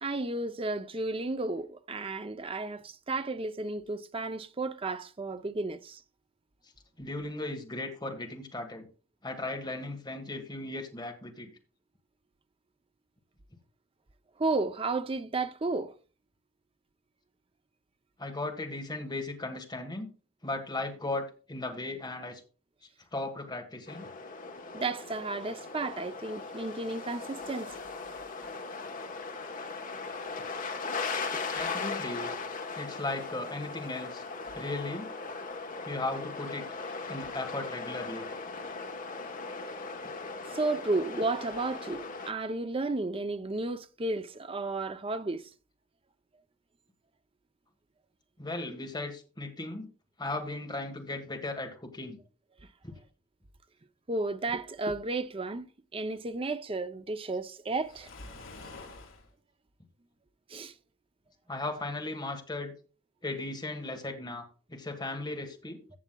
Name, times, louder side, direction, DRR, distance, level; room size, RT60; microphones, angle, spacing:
voice 1, 0.0-6.0 14.4-15.9 24.7-27.7 31.3-31.6 40.5-45.5 54.1-58.1 60.5-60.7, right 3 dB, 25° right, 0.5 m, -33 dB
voice 2, 7.0-8.9 9.2-11.5 18.2-20.1 20.4-22.4 23.1-24.1 31.5-32.3 32.7-34.2 34.5-35.1 35.8-36.7 37.1-38.3 48.4-49.9 50.2-52.2 52.8-52.9 61.5-62.7 63.2-65.8, left 2 dB, 20° left, 1.4 m, -36 dB
sound 1, 23.9-42.3, left 4 dB, 40° left, 1.0 m, -38 dB
Waves surf, 57.8-59.3, left 2 dB, 65° left, 1.9 m, -46 dB
15.0 x 7.1 x 2.2 m
head